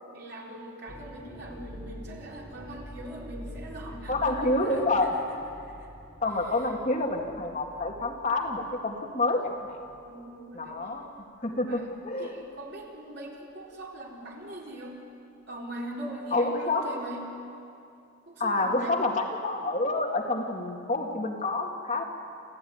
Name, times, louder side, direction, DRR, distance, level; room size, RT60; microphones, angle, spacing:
voice 1, 0.0-4.9 5.3-5.9 6.5-6.6 10.0-10.8 11.6-15.0 15.5-17.3 18.3-19.1, right 1 dB, 50° right, -2 dB, 4.1 m, -41 dB
sound 1, 0.9-10.3 10.7-11.1 11.8-12.1, left 1 dB, 10° left, 1.1 m, -46 dB
voice 2, 4.1-5.1 6.2-9.8 10.5-12.4 16.3-16.8 18.4-22.0, left 2 dB, 35° left, 1 dB, 2.0 m, -28 dB
27.5 x 15.0 x 9.6 m, 2.5 s
head